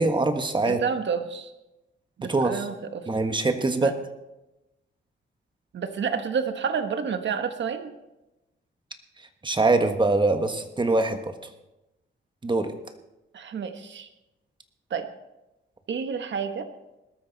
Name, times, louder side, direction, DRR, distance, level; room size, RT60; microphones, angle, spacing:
voice 1, 0.0-0.8 2.3-2.6 3.1-3.9 9.4-11.3 12.4-12.7, right 3 dB, 25° right, 7 dB, 1.4 m, -23 dB
voice 2, 0.6-1.5 2.2-3.1 3.8-3.9 5.7-7.9 13.3-14.1 14.9-15.1 15.9-16.7, right 6 dB, 65° right, 8 dB, 1.4 m, -29 dB
20.0 x 13.0 x 4.1 m, 0.98 s
wide cardioid pair, 120°, 20 cm